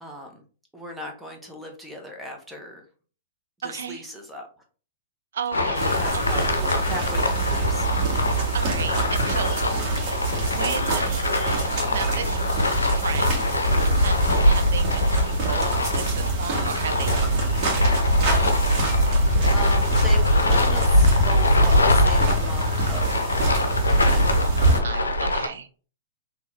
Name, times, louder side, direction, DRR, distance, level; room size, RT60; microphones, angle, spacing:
voice 1, 0.0-0.4 0.7-2.8 3.6-4.5 5.5-7.9 9.1-9.4 19.0-23.6 23.9-24.3, equal, 5° right, 1 dB, 1.0 m, -38 dB
voice 2, 3.6-4.0 5.3-6.6 8.5-9.6 10.0-11.2 11.9-12.4 12.7-13.4 13.8-18.1 24.8-25.7, right 6 dB, 70° right, 8 dB, 0.5 m, -34 dB
sound 1, 5.5-25.5, left 1 dB, 90° left, 0.5 m, -23 dB
sound 2, 5.7-24.8, right 2 dB, 45° right, 1.6 m, -25 dB
3.9 x 3.0 x 2.7 m, 0.39 s
hypercardioid pair, 110°, 0 cm